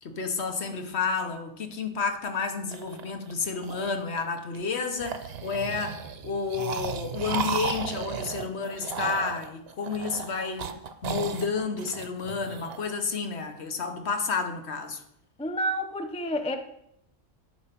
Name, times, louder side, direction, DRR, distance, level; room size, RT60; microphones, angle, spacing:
voice 1, 0.0-10.7 11.0-15.0, left 5 dB, 60° left, 7 dB, 1.2 m, -31 dB
sound 1, 2.7-4.6 5.0-12.8, right 6 dB, 55° right, 0.9 m, -35 dB
voice 2, 15.4-16.6, equal, 10° left, 7 dB, 0.4 m, -29 dB
10.0 x 5.4 x 5.8 m, 0.78 s
omnidirectional pair, 1.3 m